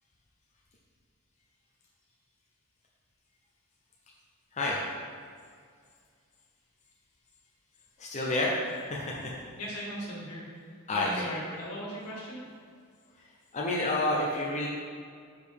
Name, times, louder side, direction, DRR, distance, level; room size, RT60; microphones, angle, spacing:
voice 1, 8.0-8.5 8.9-9.4 10.9-11.1 13.2-13.3 13.5-14.7, left 2 dB, 30° left, -3 dB, 0.6 m, -29 dB
voice 2, 9.6-12.4, equal, 80° left, -4 dB, 1.7 m, -38 dB
6.7 x 4.9 x 3.5 m, 2.1 s
head